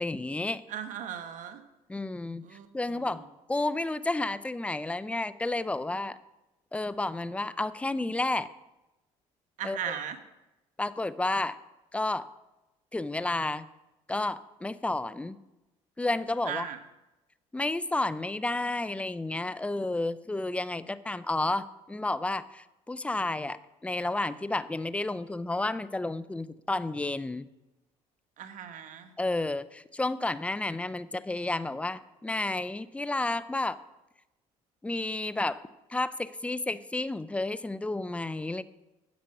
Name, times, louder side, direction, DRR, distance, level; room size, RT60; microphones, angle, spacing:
voice 1, 0.0-0.6 1.9-2.4 2.7-3.2 3.5-6.2 6.7-8.5 9.6-9.8 10.8-11.6 11.9-12.3 12.9-13.7 14.1-15.4 16.0-16.6 17.5-23.6 23.8-27.5 29.2-33.8 34.8-35.6 35.9-38.6, left 2 dB, 10° left, 15 dB, 0.5 m, -31 dB
voice 2, 0.7-1.6 2.4-3.1 9.6-10.2 16.4-16.8 28.4-29.1, right 8 dB, 65° right, 9 dB, 1.2 m, -37 dB
10.5 x 7.6 x 5.8 m, 0.98 s
supercardioid pair, 75°, 14 cm